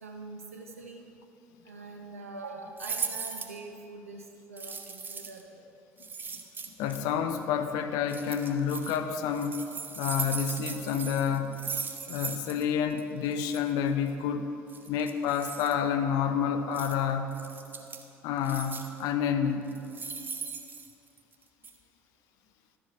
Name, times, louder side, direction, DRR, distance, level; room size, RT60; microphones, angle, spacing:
voice 1, 0.0-1.1 1.6-5.6, right 3 dB, 80° right, 3 dB, 0.8 m, -44 dB
sound 1, 2.8-3.6 4.6-5.4 6.0-7.0 8.1-9.0 9.3-12.7 12.9-13.0 13.3-13.6 14.7-15.7 16.7-17.0 17.3-18.1 18.4-19.0 19.7-21.3 21.6-21.7, right 5 dB, 25° right, 0.8 m, -38 dB
voice 2, 6.8-9.6 10.0-11.7 12.1-14.5 14.9-17.4 18.2-19.7, left 7 dB, 60° left, 8 dB, 0.6 m, -29 dB
12.0 x 7.4 x 4.2 m, 2.8 s
figure-of-eight pair, 55°, 7 cm